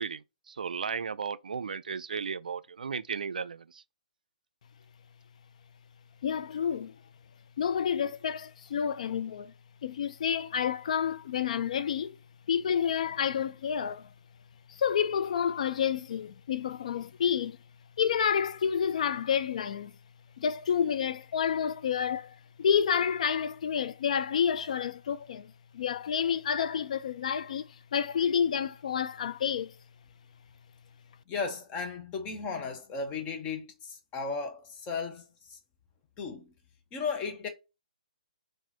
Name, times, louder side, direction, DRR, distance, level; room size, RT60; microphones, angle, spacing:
voice 1, 0.0-3.8, right 6 dB, 80° right, 0.3 m, -35 dB
voice 2, 6.2-6.9 7.6-9.5 9.8-12.2 12.5-14.1 14.7-17.6 18.0-19.9 20.4-29.7, left 8 dB, 55° left, 0.3 m, -29 dB
voice 3, 31.3-35.6 36.2-36.5 36.9-37.5, left 5 dB, 25° left, 0.9 m, -35 dB
3.9 x 2.5 x 2.8 m
hypercardioid pair, 140°, 4 cm